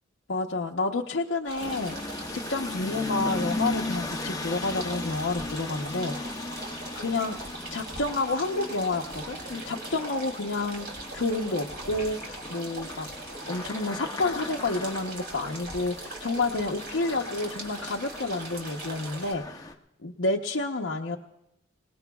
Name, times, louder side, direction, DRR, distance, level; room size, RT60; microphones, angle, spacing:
voice 1, 0.3-6.6 6.9-7.4 7.7-13.1 13.5-19.7 20.0-21.2, left 3 dB, 75° left, -2 dB, 0.8 m, -30 dB
sound 1, 1.5-19.3, right 3 dB, 55° right, 2.9 m, -41 dB
sound 2, 1.6-19.7, left 2 dB, 20° left, 0.7 m, -37 dB
27.0 x 19.0 x 2.3 m, 0.86 s
head